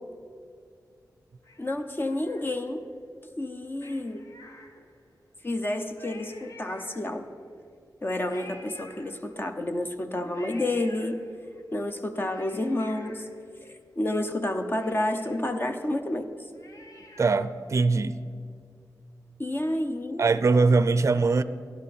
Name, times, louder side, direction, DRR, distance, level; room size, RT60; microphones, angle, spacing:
Cat, 1.4-2.9 3.8-5.2 5.6-5.7 5.9-7.4 8.3-9.6 10.3-11.6 12.1-14.1 14.4-14.5 14.7-17.5 17.9-18.0, left 2 dB, 55° left, 1.2 m, -50 dB
voice 1, 1.6-2.9 3.4-4.2 5.4-7.3 8.0-11.2 11.7-13.3 13.6-16.3 19.4-20.2, left 1 dB, 30° left, 6 dB, 0.8 m, -30 dB
voice 2, 17.2-18.2 20.2-21.4, right 4 dB, 50° right, 13 dB, 0.5 m, -22 dB
13.5 x 11.5 x 4.2 m, 2.3 s
wide cardioid pair, 75°, 7 cm